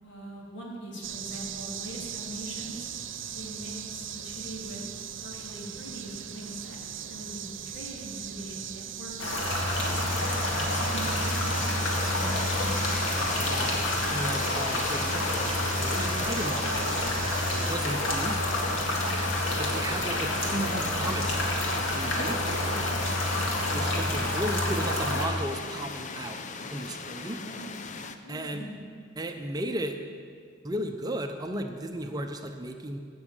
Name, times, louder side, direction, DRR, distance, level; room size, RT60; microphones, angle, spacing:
voice 1, 0.0-2.9 3.3-4.8 5.2-10.1 10.5-12.8 23.3-23.7 27.3-27.8 28.2-28.7, right 1 dB, 65° left, -3 dB, 2.9 m, -42 dB
sound 1, 1.0-17.8, right 9 dB, 80° right, 0.7 m, -39 dB
sound 2, 9.2-25.3, left 1 dB, 85° left, 2.0 m, -28 dB
sound 3, 9.7-28.1, left 5 dB, 40° left, 0.6 m, -37 dB
voice 2, 13.5-17.0 17.7-18.5 19.6-22.4 23.7-26.4 26.7-27.4 28.3-28.6 29.2-30.0 30.6-33.0, right 1 dB, 20° right, 5 dB, 0.6 m, -35 dB
16.0 x 6.2 x 6.6 m, 2.1 s
head